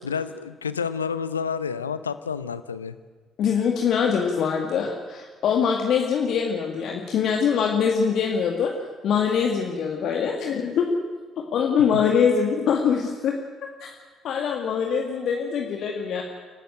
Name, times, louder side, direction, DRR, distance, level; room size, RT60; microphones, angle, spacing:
voice 1, 0.0-2.9, left 6 dB, 85° left, 14 dB, 0.7 m, -29 dB
voice 2, 3.4-8.7 9.0-10.9 11.5-13.3 13.8-13.9 14.2-16.2, left 7 dB, 55° left, 1 dB, 2.0 m, -23 dB
28.5 x 12.0 x 9.1 m, 1.4 s
figure-of-eight pair, 45°, 0 cm